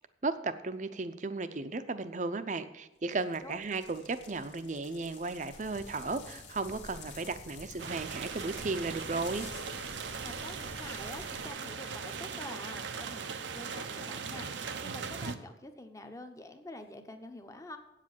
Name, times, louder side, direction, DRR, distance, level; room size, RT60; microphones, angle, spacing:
voice 1, 0.2-9.5, right 3 dB, 40° right, 11 dB, 0.6 m, -35 dB
sound 1, 3.1-9.9, left 5 dB, 85° left, 1.9 m, -53 dB
sound 2, 5.5-11.5, left 2 dB, 40° left, 1.4 m, -51 dB
sound 3, 7.8-15.4, right 5 dB, 85° right, 0.7 m, -39 dB
voice 2, 10.2-17.8, left 2 dB, 20° left, 7 dB, 0.9 m, -47 dB
8.7 x 7.5 x 7.4 m, 0.96 s
head